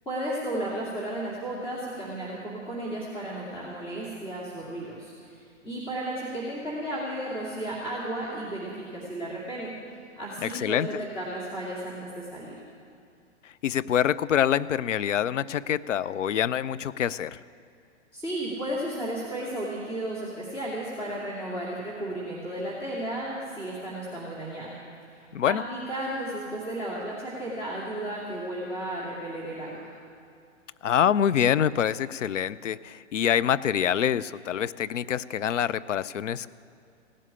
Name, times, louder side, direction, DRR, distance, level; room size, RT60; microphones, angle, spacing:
voice 1, 0.1-9.7 10.2-12.6 18.1-24.8 25.1-29.9, right 1 dB, 15° left, -6 dB, 2.5 m, -34 dB
voice 2, 10.4-10.9 13.6-17.4 25.3-25.6 30.8-36.5, left 9 dB, 80° left, 16 dB, 0.6 m, -25 dB
16.5 x 7.6 x 9.8 m, 2.4 s
hypercardioid pair, 125°, 36 cm